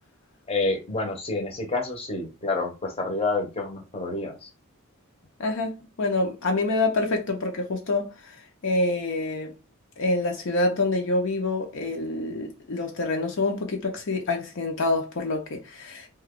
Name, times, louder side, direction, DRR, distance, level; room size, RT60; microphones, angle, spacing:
voice 1, 0.5-4.5, left 2 dB, 25° left, 0.8 m, -28 dB
voice 2, 5.4-8.3 8.6-9.5 10.0-16.1, left 2 dB, 60° left, 0.6 m, -26 dB
2.9 x 2.3 x 3.6 m
head